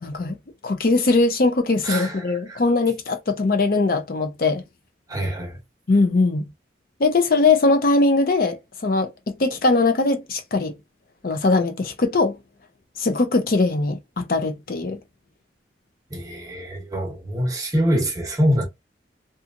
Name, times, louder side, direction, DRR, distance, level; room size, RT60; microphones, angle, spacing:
voice 1, 0.0-0.4 0.6-4.6 5.9-6.4 7.0-10.7 11.2-12.4 13.0-15.0, left 3 dB, 50° left, 0.5 m, -20 dB
voice 2, 1.8-2.6 5.1-5.6 16.1-18.7, equal, 20° right, 0.8 m, -24 dB
2.8 x 2.4 x 2.5 m
head